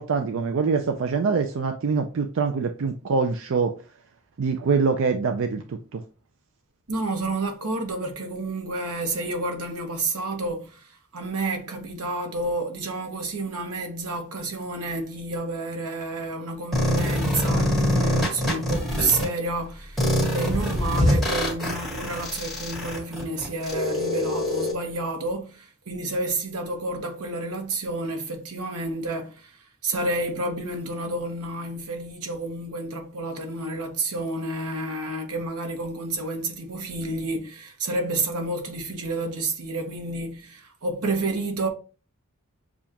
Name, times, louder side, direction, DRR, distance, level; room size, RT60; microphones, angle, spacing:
voice 1, 0.0-3.7 4.4-6.0, right 5 dB, 60° right, 0.4 m, -24 dB
voice 2, 6.9-41.7, right 2 dB, 90° right, 1.0 m, -30 dB
sound 1, 16.7-19.2 20.0-24.7, left 1 dB, ahead, 1.6 m, -24 dB
6.9 x 2.4 x 2.9 m
head